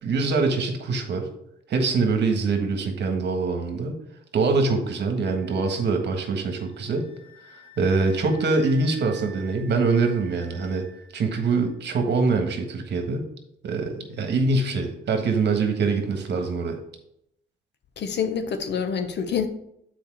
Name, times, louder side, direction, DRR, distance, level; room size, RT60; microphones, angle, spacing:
voice 1, 0.0-1.3 1.7-4.0 4.3-7.1 7.5-10.8 11.1-13.2 13.6-16.8, right 4 dB, 60° right, 1.5 m, -24 dB
sound 1, 5.2-12.0, right 2 dB, 25° right, 1.8 m, -51 dB
voice 2, 18.0-19.5, left 7 dB, 60° left, 1.0 m, -26 dB
7.1 x 4.6 x 4.7 m
cardioid pair, 90°, 20 cm